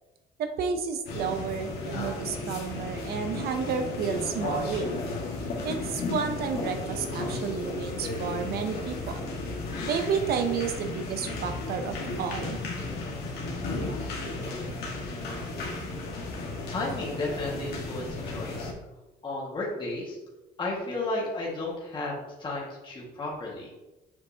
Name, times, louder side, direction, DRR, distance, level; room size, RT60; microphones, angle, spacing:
voice 1, 0.4-4.9 5.6-9.3 9.9-12.6, right 6 dB, 65° right, 6 dB, 0.6 m, -31 dB
sound 1, 1.1-18.7, left 2 dB, 70° left, 1.6 m, -34 dB
voice 2, 16.7-18.7 19.2-20.2 20.6-23.7, left 2 dB, 30° left, -4 dB, 1.7 m, -33 dB
7.4 x 5.3 x 2.8 m, 1.1 s
cardioid pair, 110°, 17 cm